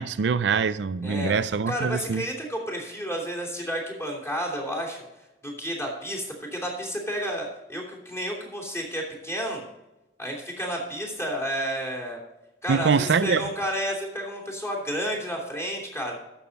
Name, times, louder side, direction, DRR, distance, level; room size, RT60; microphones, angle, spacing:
voice 1, 0.0-2.2 12.7-13.5, right 5 dB, 80° right, 0.5 m, -24 dB
voice 2, 1.0-1.3 1.7-5.0 5.4-6.3 6.5-9.6 10.2-12.2 12.6-16.1, equal, 15° left, 3.0 m, -31 dB
12.5 x 7.3 x 4.1 m
head